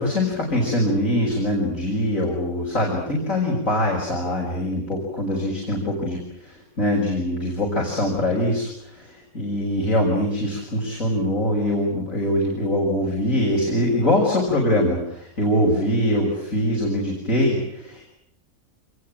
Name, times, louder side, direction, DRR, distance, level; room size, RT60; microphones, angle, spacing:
voice 1, 0.0-18.1, left 1 dB, 65° left, -2 dB, 6.8 m, -23 dB
28.0 x 21.5 x 9.0 m, 0.76 s
omnidirectional pair, 1.5 m